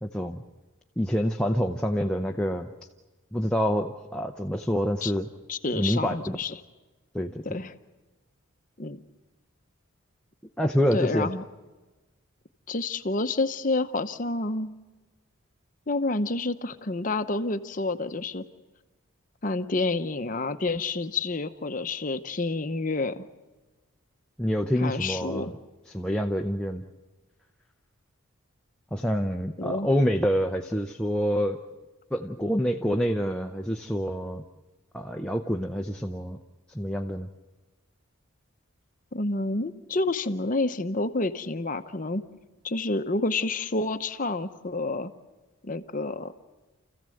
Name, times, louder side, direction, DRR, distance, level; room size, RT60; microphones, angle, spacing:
voice 1, 0.0-0.4 1.0-2.7 3.3-5.3 5.7-6.4 7.1-7.6 10.6-11.3 24.4-25.5 25.9-26.8 28.9-31.6 32.1-34.4 34.9-36.4 36.7-37.3, equal, 5° left, 3 dB, 0.6 m, -27 dB
voice 2, 5.5-6.6 7.4-7.7 8.8-9.0 10.9-11.4 12.7-14.7 15.9-18.4 19.4-23.2 24.8-25.5 29.6-29.9 39.1-42.2 42.6-45.1 45.6-46.3, left 2 dB, 40° left, 8 dB, 0.8 m, -29 dB
29.5 x 15.0 x 7.8 m, 1.2 s
head